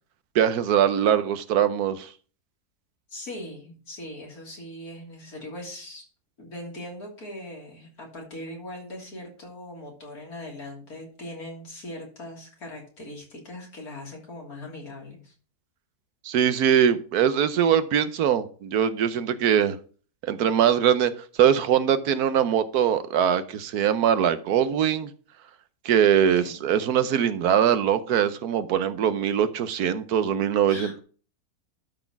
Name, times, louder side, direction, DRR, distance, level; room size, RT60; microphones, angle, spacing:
voice 1, 0.3-2.1 16.2-19.8 20.2-21.1 21.4-25.1 25.8-31.0, right 9 dB, 75° right, 1.2 m, -22 dB
voice 2, 3.1-6.1 6.4-15.3 26.4-26.6 30.7-31.0, left 1 dB, 65° left, 3.5 m, -40 dB
12.0 x 4.2 x 5.8 m
omnidirectional pair, 1.7 m